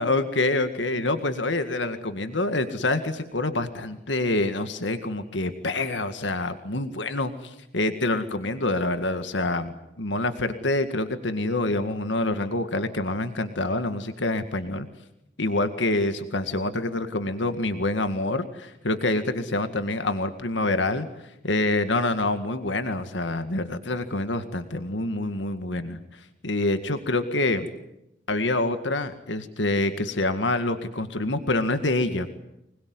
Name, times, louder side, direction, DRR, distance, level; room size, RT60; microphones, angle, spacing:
voice 1, 0.0-14.9 15.4-21.1 21.4-27.7 28.3-32.3, left 2 dB, 85° left, 9 dB, 2.0 m, -26 dB
25.5 x 21.5 x 9.7 m, 0.84 s
head